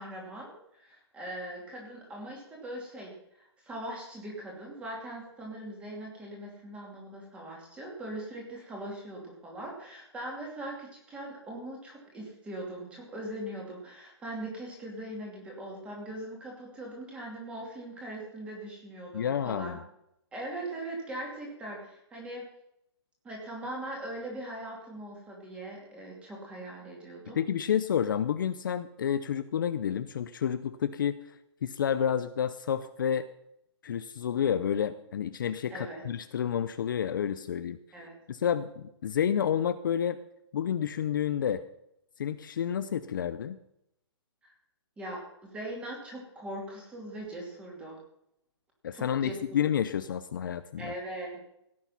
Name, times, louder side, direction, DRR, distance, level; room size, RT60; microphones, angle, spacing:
voice 1, 0.0-3.1 3.4-19.8 20.3-22.5 23.2-27.4 35.7-36.0 37.9-38.2 44.4-44.5 45.0-48.0 48.9-49.3 50.8-51.5, right 1 dB, 5° right, -1 dB, 2.7 m, -41 dB
voice 2, 19.1-19.8 27.4-31.2 31.6-33.3 33.8-37.8 38.3-40.2 40.5-41.6 42.2-43.6 48.8-50.9, left 8 dB, 45° left, 11 dB, 0.6 m, -30 dB
16.0 x 8.6 x 5.8 m, 0.79 s
hypercardioid pair, 175°, 15 cm